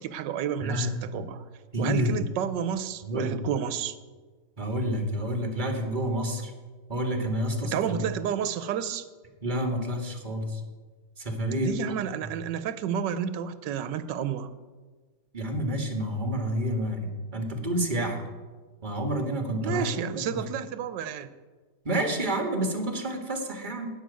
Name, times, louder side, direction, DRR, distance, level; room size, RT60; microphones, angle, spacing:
voice 1, 0.0-1.4 1.8-3.9 7.6-9.1 11.6-14.5 19.6-21.3, right 8 dB, 85° right, 13 dB, 1.4 m, -31 dB
voice 2, 0.6-1.2 1.7-2.1 3.1-3.4 4.6-6.5 6.9-8.0 9.4-10.6 11.2-11.9 15.3-18.2 18.8-19.9 21.9-23.9, equal, 25° right, 3 dB, 1.7 m, -29 dB
12.5 x 6.0 x 9.4 m, 1.4 s
omnidirectional pair, 1.9 m